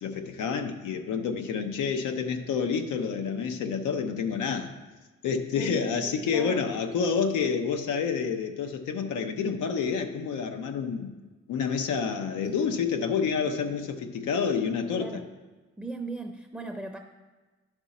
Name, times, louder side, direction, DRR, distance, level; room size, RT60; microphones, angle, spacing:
voice 1, 0.0-4.7 5.2-11.1 11.5-15.2, left 6 dB, 85° left, 5 dB, 0.8 m, -28 dB
voice 2, 5.6-6.7 14.9-15.2 15.8-17.0, right 2 dB, ahead, 4 dB, 0.6 m, -38 dB
11.0 x 5.3 x 4.1 m, 1.3 s
cardioid pair, 90°, 30 cm